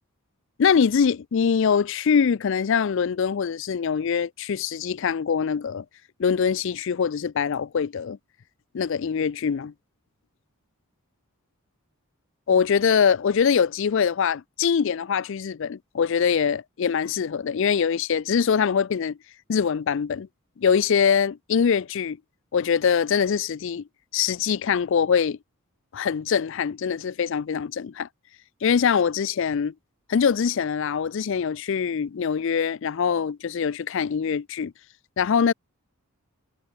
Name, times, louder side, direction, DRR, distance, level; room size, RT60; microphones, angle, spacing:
voice 1, 0.6-5.8 6.2-8.2 8.7-9.7 12.5-19.2 19.5-20.3 20.6-22.2 22.5-23.8 24.1-25.4 25.9-28.1 28.6-29.7 30.1-34.7 35.2-35.5, left 6 dB, 55° left, 0.4 m, -23 dB
head